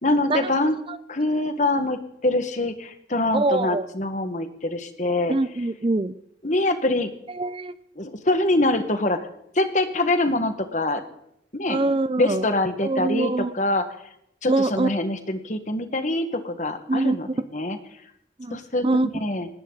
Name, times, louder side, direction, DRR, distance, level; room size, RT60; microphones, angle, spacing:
voice 1, 0.0-0.8 1.1-5.4 6.4-7.1 8.0-9.3 9.5-11.0 11.5-11.9 12.2-13.9 14.4-17.8 18.5-18.9 19.2-19.5, left 2 dB, 40° left, 8 dB, 1.6 m, -24 dB
voice 2, 3.3-3.8 5.3-6.1 7.4-7.7 11.7-12.4 12.8-13.5 14.5-14.9 16.9-17.4 18.4-18.6 18.8-19.1, right 2 dB, 30° right, 14 dB, 0.5 m, -23 dB
19.5 x 17.0 x 4.0 m, 0.74 s
head